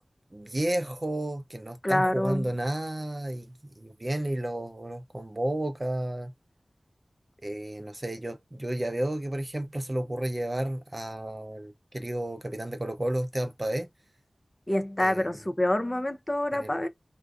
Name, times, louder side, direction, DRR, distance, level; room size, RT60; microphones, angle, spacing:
voice 1, 0.3-6.3 7.4-13.9 15.0-15.3 16.5-16.7, right 1 dB, 30° right, 0.5 m, -32 dB
voice 2, 1.8-2.4 14.7-16.9, left 1 dB, 30° left, 0.4 m, -26 dB
2.4 x 2.3 x 2.3 m
wide cardioid pair, 60°, 0 cm